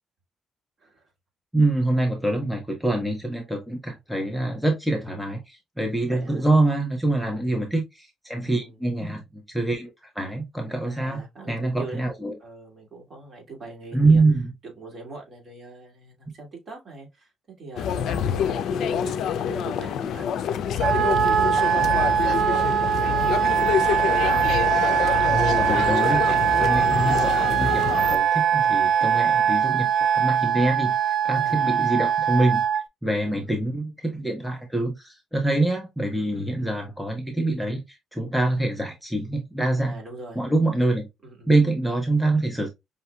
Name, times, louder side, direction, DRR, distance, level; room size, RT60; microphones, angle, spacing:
voice 1, 0.8-1.1 6.1-6.4 7.2-7.5 8.4-8.8 10.8-12.0 12.4-14.2 14.8-17.3 17.6-23.3 31.3-31.7 33.2-33.6 36.1-36.6 39.8-40.4 41.2-41.5, right 3 dB, 40° right, 2.4 m, -42 dB
voice 2, 1.5-9.2 9.5-11.2 11.5-12.4 13.9-14.5 25.3-30.9 31.2-32.6 33.0-39.9 40.4-41.1 41.5-42.7, right 2 dB, 5° right, 0.9 m, -25 dB
sound 1, 17.8-28.2, left 8 dB, 75° left, 0.4 m, -26 dB
Wind instrument woodwind instrument, 20.8-32.8, right 8 dB, 65° right, 0.4 m, -22 dB
5.4 x 2.7 x 2.2 m
cardioid pair, 90°, 0 cm